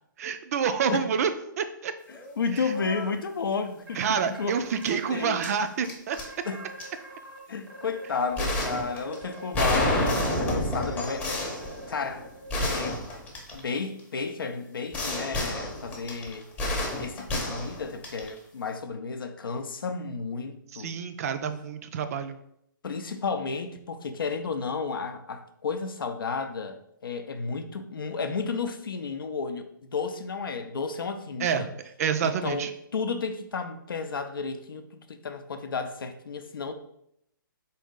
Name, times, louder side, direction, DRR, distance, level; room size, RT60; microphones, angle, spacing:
voice 1, 0.2-1.3 1.6-1.9 4.0-6.2 20.7-22.4 31.4-31.7 32.0-32.7, right 7 dB, 45° right, 10 dB, 0.4 m, -28 dB
voice 2, 2.1-4.6 4.9-5.4 6.4-6.7 7.5-12.3 12.6-13.0 13.5-16.5 17.0-21.0 22.8-31.7 32.2-36.7, left 4 dB, 80° left, 8 dB, 0.5 m, -32 dB
sound 1, 2.1-2.4 2.7-3.1 4.8-4.9 5.4-6.3 6.8-6.9 8.4-14.0 14.9-18.4, left 1 dB, 15° left, 0.7 m, -30 dB
sound 2, 3.9-5.2 5.7-5.8 6.2-7.4 7.7-12.9, right 2 dB, 85° right, 1.0 m, -44 dB
4.0 x 2.7 x 3.7 m, 0.75 s
hypercardioid pair, 140°, 11 cm